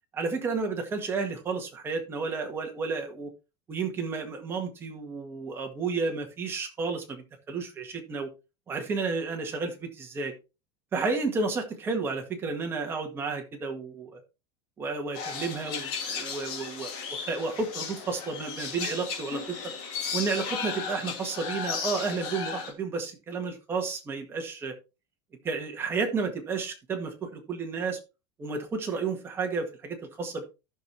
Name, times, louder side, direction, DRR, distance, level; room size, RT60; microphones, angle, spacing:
voice 1, 0.1-3.3 3.7-8.3 8.7-10.3 10.9-14.2 14.8-19.6 20.1-24.7 25.4-28.0 28.4-30.4, right 4 dB, 20° right, 1.7 m, -32 dB
sound 1, 15.1-22.7, left 6 dB, 50° left, 2.8 m, -35 dB
14.5 x 6.4 x 2.8 m
supercardioid pair, 165°, 13 cm